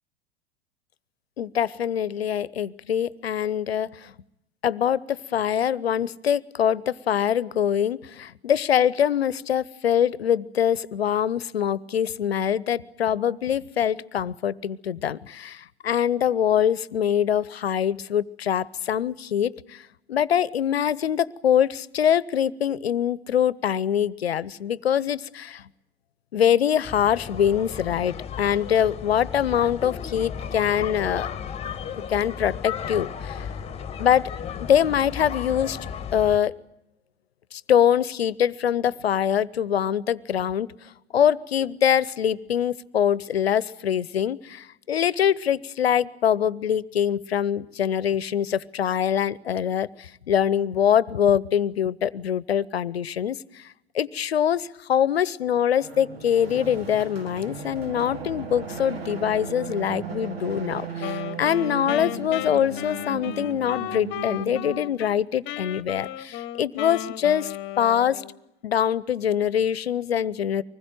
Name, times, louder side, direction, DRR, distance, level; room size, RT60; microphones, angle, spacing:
voice 1, 1.4-4.1 4.6-19.8 20.1-25.6 26.3-31.3 32.1-33.5 34.0-34.3 34.6-35.8 36.1-36.5 37.5-40.7 41.1-53.7 53.9-68.2 68.6-70.6, left 9 dB, 75° left, 21 dB, 0.9 m, -24 dB
sound 1, 26.8-36.4, left 7 dB, 20° left, 1.5 m, -35 dB
sound 2, 55.8-65.0, right 4 dB, 70° right, 2.6 m, -36 dB
Wind instrument woodwind instrument, 61.0-65.2 65.4-68.4, left 13 dB, 35° left, 1.2 m, -35 dB
25.0 x 20.5 x 9.2 m, 0.84 s
figure-of-eight pair, 85°, 31 cm